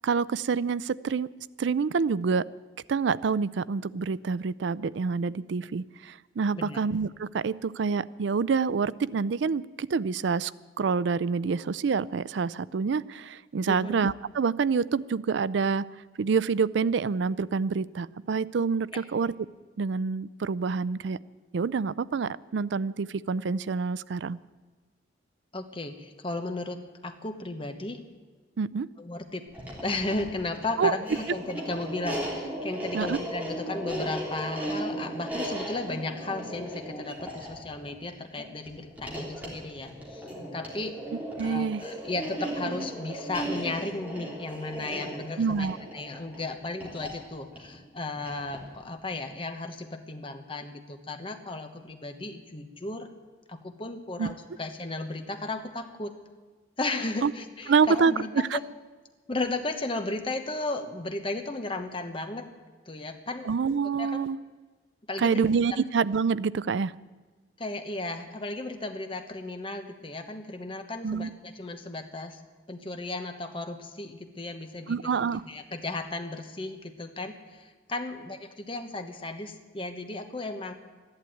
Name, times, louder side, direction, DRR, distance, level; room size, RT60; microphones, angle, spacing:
voice 1, 0.0-1.3 1.6-2.5 2.9-10.5 10.8-15.9 16.2-19.3 19.8-21.2 21.5-24.4 28.6-28.9 30.8-31.0 32.9-33.2 41.4-41.8 45.4-45.8 54.2-54.3 57.2-57.3 57.7-58.1 58.5-58.6 63.5-64.4 65.2-66.9 71.0-71.3 74.9-75.4, right 5 dB, 70° right, 18 dB, 0.4 m, -27 dB
voice 2, 13.7-14.0 18.9-19.0 25.5-28.0 29.0-29.5 29.8-41.0 41.4-53.1 53.5-56.2 56.8-58.6 59.3-62.5 62.9-63.5 64.0-64.2 65.1-65.5 67.6-72.4 72.7-75.1 75.5-80.7, left 2 dB, 25° left, 7 dB, 1.1 m, -35 dB
sound 1, 29.5-48.8, right 1 dB, 10° right, 3.2 m, -36 dB
13.5 x 11.5 x 9.1 m, 1.3 s
head